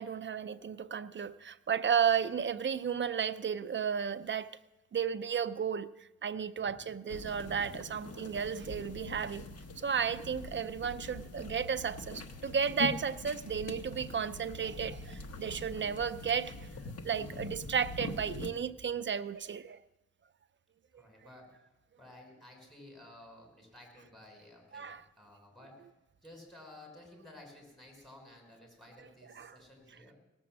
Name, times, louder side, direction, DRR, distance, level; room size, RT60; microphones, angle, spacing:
voice 1, 0.0-4.6 4.9-9.5 9.8-16.7 17.0-19.8 24.7-25.0 29.4-29.6, right 7 dB, 40° right, 0.5 m, -33 dB
sound 1, 7.1-18.5, left 2 dB, 55° left, 1.2 m, -43 dB
voice 2, 21.0-21.5 22.0-25.9 26.2-30.1, left 1 dB, ahead, 4.6 m, -54 dB
18.0 x 6.9 x 7.4 m
wide cardioid pair, 100°, 30 cm